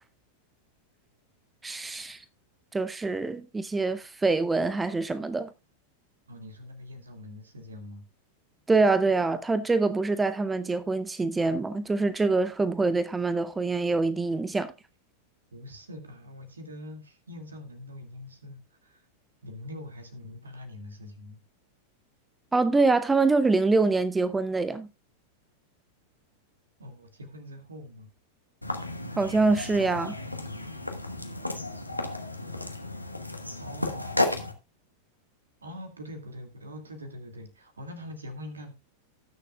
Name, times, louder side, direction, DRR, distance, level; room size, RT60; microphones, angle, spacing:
voice 1, 1.6-2.2 2.7-5.5 8.7-14.7 22.5-24.9 29.2-30.2, right 3 dB, 10° right, 0.6 m, -25 dB
voice 2, 6.3-8.0 15.5-19.0 19.4-21.4 26.8-28.1 33.6-34.5 35.6-38.7, left 1 dB, 75° right, 2.1 m, -43 dB
sound 1, 28.6-34.5, left 2 dB, 85° left, 1.2 m, -33 dB
19.0 x 6.7 x 2.3 m
figure-of-eight pair, 90°, 0 cm